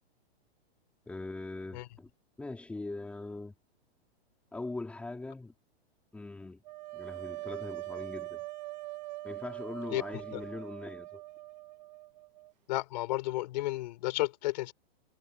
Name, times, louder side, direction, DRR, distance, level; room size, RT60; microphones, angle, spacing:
voice 1, 1.1-2.1 2.4-3.5 4.5-5.5 6.1-6.6 6.9-8.4 9.2-11.2, left 2 dB, 5° left, 4.5 m, -41 dB
sound 1, 6.6-12.5, right 19 dB, 40° right, 2.4 m, -42 dB
voice 2, 12.7-14.7, left 17 dB, 45° left, 4.5 m, -32 dB
hypercardioid pair, 165°, 32 cm